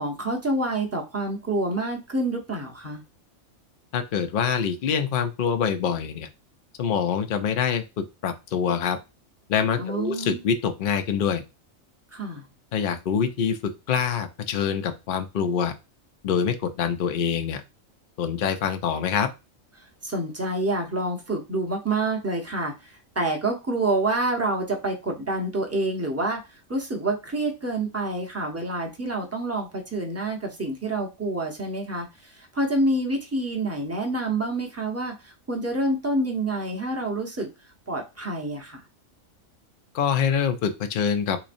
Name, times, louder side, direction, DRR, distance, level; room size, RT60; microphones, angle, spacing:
voice 1, 0.0-3.0 9.8-10.4 12.1-12.5 19.8-26.4 26.7-37.5 37.9-38.8, right 2 dB, 15° right, 1 dB, 0.6 m, -27 dB
voice 2, 3.9-6.3 6.8-9.0 9.5-11.4 12.7-15.7 16.2-17.6 18.2-19.3 39.9-41.5, left 7 dB, 60° left, 7 dB, 0.5 m, -25 dB
3.9 x 3.0 x 2.5 m, 0.27 s
omnidirectional pair, 1.4 m